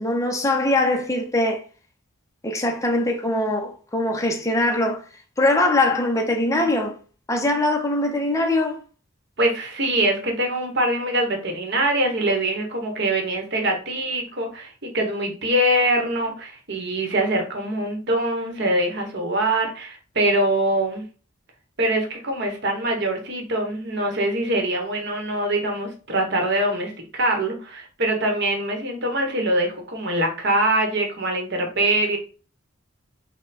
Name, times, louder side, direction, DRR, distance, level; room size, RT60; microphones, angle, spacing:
voice 1, 0.0-1.6 2.4-5.0 5.4-6.9 7.3-8.8, left 2 dB, 15° left, 0.7 m, -22 dB
voice 2, 9.4-21.0 21.8-32.2, right 1 dB, 55° right, 1.1 m, -23 dB
4.2 x 2.3 x 4.1 m
head